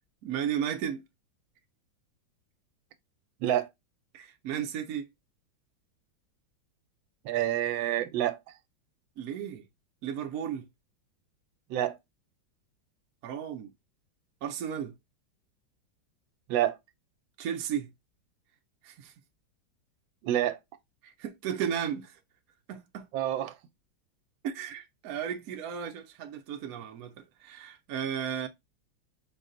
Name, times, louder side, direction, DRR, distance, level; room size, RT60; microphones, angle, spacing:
voice 1, 0.2-1.0 4.1-5.1 9.2-9.7 10.0-10.7 13.2-13.7 14.4-14.9 17.4-17.9 18.8-19.1 21.0-22.2 22.7-23.1 24.4-28.5, right 9 dB, 65° right, 0.9 m, -34 dB
voice 2, 7.2-8.4 11.7-12.0 16.5-16.8 20.2-20.6 23.1-23.6, right 12 dB, 85° right, 1.4 m, -27 dB
4.7 x 2.2 x 3.8 m
omnidirectional pair, 2.1 m